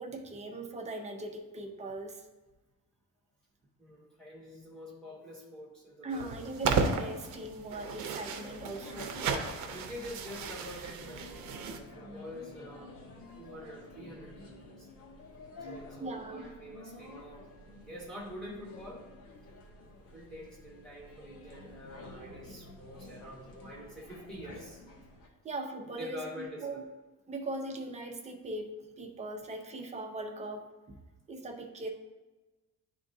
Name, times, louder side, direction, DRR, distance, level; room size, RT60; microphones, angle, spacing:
voice 1, 0.0-2.2 6.0-9.2 16.0-16.5 25.0-25.1 25.4-26.8 27.3-28.7 29.0-31.0 31.3-31.9, right 2 dB, 20° right, 2 dB, 0.5 m, -40 dB
voice 2, 3.8-6.4 9.7-12.9 13.4-14.9 15.6-17.5 17.8-19.0 20.1-24.8 26.0-26.8, equal, ahead, -5 dB, 1.4 m, -46 dB
sound 1, 6.1-11.8, right 5 dB, 60° right, 0.6 m, -34 dB
sound 2, 8.4-25.3, left 2 dB, 80° left, 1.1 m, -50 dB
10.0 x 3.5 x 2.6 m, 1.2 s
cardioid pair, 175°, 33 cm